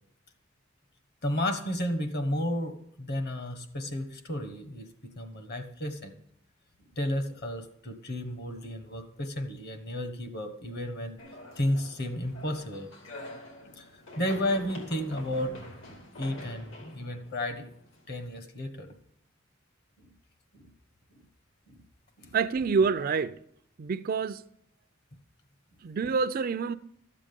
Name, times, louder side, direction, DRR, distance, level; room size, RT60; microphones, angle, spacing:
voice 1, 1.2-6.2 7.0-11.2 11.6-12.9 13.6-13.9 14.2-15.6 15.9-17.7 18.1-18.9 20.0-20.1 20.5-20.7 21.7-21.8 22.2-22.3, left 1 dB, 55° left, 1.3 m, -33 dB
sound 1, 11.2-18.3, left 1 dB, 75° left, 2.3 m, -46 dB
voice 2, 22.3-23.4 23.8-24.4 25.8-26.8, right 5 dB, 45° right, 0.4 m, -27 dB
12.5 x 7.6 x 5.2 m
head